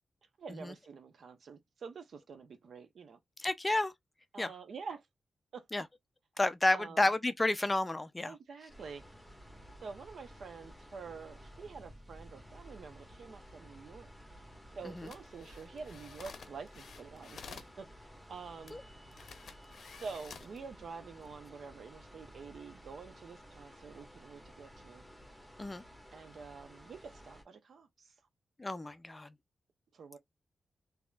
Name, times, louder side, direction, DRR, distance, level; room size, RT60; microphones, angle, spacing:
voice 1, 0.4-3.2 4.3-5.1 5.5-5.8 6.7-7.1 8.3-9.0 9.8-14.1 14.8-17.9 18.3-18.8 20.0-25.1 26.1-28.1 29.9-30.2, right 5 dB, 70° right, 0.8 m, -47 dB
voice 2, 3.4-3.9 4.4-4.5 5.7-5.8 6.4-8.3 14.8-15.1 18.7-18.8 25.6-25.8 28.6-29.3, left 2 dB, 15° left, 0.4 m, -31 dB
sound 1, 8.7-27.4, equal, ahead, 1.4 m, -54 dB
sound 2, 15.0-17.8 18.7-18.8 19.1-20.6 21.1-21.4, left 6 dB, 70° left, 0.6 m, -51 dB
4.2 x 2.8 x 2.3 m
wide cardioid pair, 145°, 0 cm